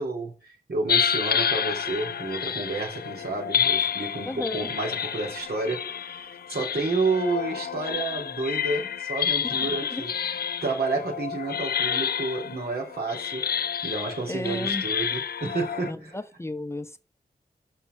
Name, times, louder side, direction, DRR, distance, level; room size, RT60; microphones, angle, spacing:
voice 1, 0.0-10.1 10.6-13.5 13.8-16.1, right 3 dB, 85° right, 3.5 m, -30 dB
sound 1, 0.9-15.9, left 8 dB, 75° left, 0.4 m, -29 dB
voice 2, 4.3-4.7 9.4-10.0 14.3-14.9 15.9-17.0, left 1 dB, 15° left, 0.8 m, -34 dB
6.0 x 5.6 x 5.9 m
wide cardioid pair, 65°, 16 cm